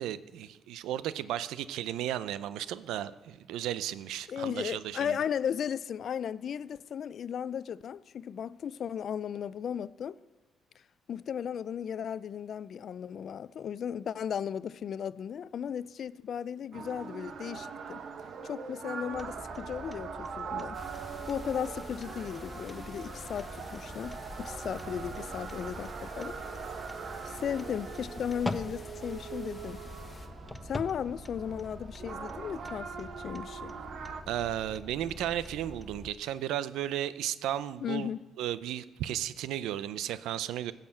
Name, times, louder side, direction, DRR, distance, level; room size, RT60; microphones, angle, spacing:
voice 1, 0.0-5.2 34.3-38.1 38.4-40.7, right 11 dB, 90° right, 0.5 m, -34 dB
voice 2, 4.3-10.2 11.1-18.0 18.4-20.8 21.3-26.4 27.2-29.8 30.6-33.7 37.8-38.2, left 8 dB, 60° left, 0.4 m, -36 dB
sound 1, 16.7-34.2, right 6 dB, 60° right, 1.2 m, -42 dB
sound 2, 19.1-36.1, left 1 dB, 10° left, 0.8 m, -45 dB
sound 3, 20.7-30.3, left 3 dB, 30° left, 1.4 m, -50 dB
15.5 x 6.6 x 7.7 m
cardioid pair, 90°, 0 cm